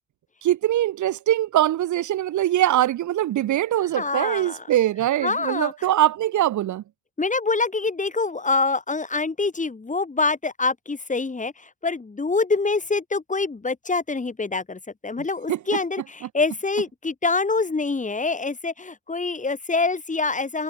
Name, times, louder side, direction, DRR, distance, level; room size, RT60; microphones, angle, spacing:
voice 1, 0.4-6.8 15.5-15.8 16.2-16.3, right 13 dB, 75° right, 2.0 m, -22 dB
voice 2, 4.0-4.6 5.2-5.7 7.2-11.5 11.8-20.6, left 3 dB, 25° left, 7.6 m, -25 dB
cardioid pair, 90°, 30 cm